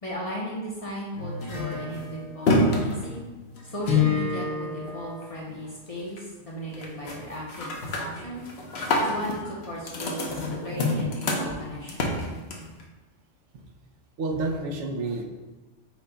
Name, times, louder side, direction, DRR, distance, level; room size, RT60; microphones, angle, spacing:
voice 1, 0.0-3.2 3.7-8.5 9.0-10.4 10.6-12.1, equal, 35° left, -5 dB, 0.7 m, -36 dB
sound 1, 1.1-5.7 6.0-6.4 6.7-7.2 7.5-12.8, left 3 dB, 65° left, 0.9 m, -28 dB
voice 2, 14.2-15.2, right 2 dB, 75° right, 1 dB, 0.9 m, -29 dB
6.1 x 2.2 x 3.9 m, 1.2 s
omnidirectional pair, 1.3 m